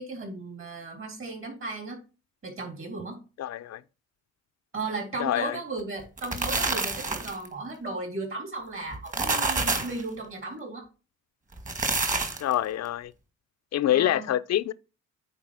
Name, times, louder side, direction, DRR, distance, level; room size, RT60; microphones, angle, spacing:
voice 1, 0.0-2.0 2.4-3.2 4.7-10.8 13.9-14.3, right 2 dB, 45° right, 3.4 m, -35 dB
voice 2, 3.4-3.8 5.2-5.6 12.4-13.1 13.7-14.7, left 12 dB, 60° left, 0.6 m, -26 dB
sound 1, 6.0-7.5 8.9-10.0 11.5-12.5, right 3 dB, 25° right, 1.7 m, -28 dB
8.9 x 4.1 x 4.9 m
cardioid pair, 90°, 30 cm